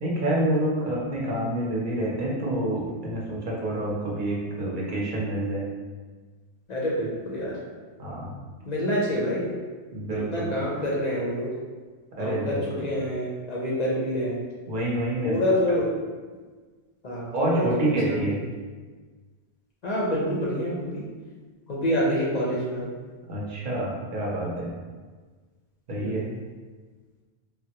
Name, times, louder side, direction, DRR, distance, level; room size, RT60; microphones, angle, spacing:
voice 1, 0.0-5.7 8.0-8.3 9.9-10.5 12.2-12.6 14.7-15.3 17.3-18.4 23.3-24.7 25.9-26.2, right 1 dB, 55° right, -4 dB, 0.8 m, -27 dB
voice 2, 6.7-7.6 8.6-9.5 10.3-11.5 12.2-14.4 15.2-15.9 17.0-18.3 19.8-21.1 21.7-22.9 25.9-26.2, equal, 50° left, -5 dB, 0.6 m, -27 dB
3.4 x 2.1 x 2.8 m, 1.4 s
omnidirectional pair, 1.0 m